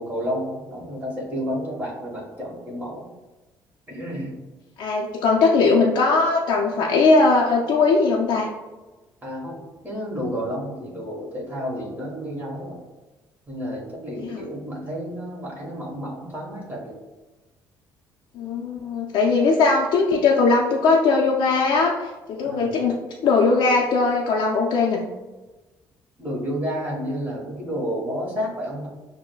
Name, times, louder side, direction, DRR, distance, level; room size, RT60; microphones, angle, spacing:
voice 1, 0.0-3.0 3.9-4.3 9.2-12.8 13.5-17.0 22.4-22.7 26.2-28.9, equal, 25° right, -5 dB, 1.3 m, -31 dB
voice 2, 4.8-8.5 14.1-14.5 18.4-25.1, left 3 dB, 65° left, -2 dB, 0.5 m, -20 dB
6.0 x 2.1 x 2.2 m, 1.2 s
cardioid pair, 95°, 8 cm